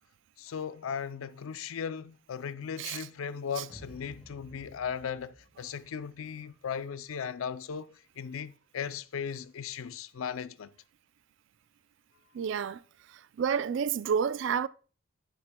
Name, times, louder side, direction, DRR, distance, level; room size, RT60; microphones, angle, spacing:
voice 1, 0.4-10.7, left 7 dB, 90° left, 0.4 m, -37 dB
sound 1, 3.7-6.9, equal, ahead, 2.1 m, -54 dB
voice 2, 12.3-12.8 13.4-14.7, right 7 dB, 65° right, 0.3 m, -29 dB
10.0 x 8.7 x 2.2 m
head